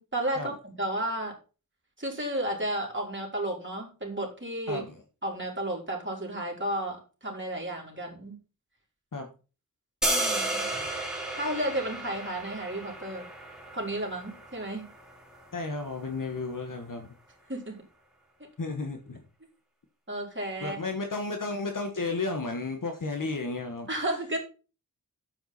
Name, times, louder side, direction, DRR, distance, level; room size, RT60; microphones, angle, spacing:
voice 1, 0.0-1.3 2.0-4.8 5.2-8.4 10.1-10.7 11.4-13.3 13.7-14.9 17.5-17.8 20.1-20.8 23.9-24.4, right 1 dB, 35° right, -1 dB, 3.7 m, -32 dB
voice 2, 4.7-5.0 9.1-9.3 15.5-17.1 18.6-19.2 20.6-23.9, left 3 dB, 60° left, 4 dB, 1.3 m, -33 dB
sound 1, 10.0-16.1, right 1 dB, ahead, 2.8 m, -33 dB
9.5 x 7.9 x 4.2 m, 0.34 s
wide cardioid pair, 90°, 35 cm